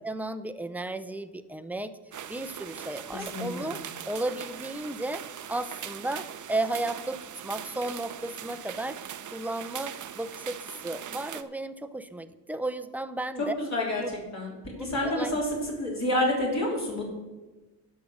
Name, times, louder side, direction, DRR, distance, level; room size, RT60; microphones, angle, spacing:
voice 1, 0.0-1.9 2.3-3.8 4.1-5.2 5.5-13.5 14.0-14.1 14.8-15.4, right 2 dB, 5° right, 10 dB, 0.6 m, -34 dB
sound 1, 2.1-11.4, right 9 dB, 50° right, 0.7 m, -41 dB
voice 2, 3.1-3.7 13.4-14.0 14.3-15.5 15.8-17.1, left 1 dB, 40° left, -3 dB, 3.5 m, -29 dB
11.0 x 6.6 x 6.4 m, 1.2 s
cardioid pair, 85°, 40 cm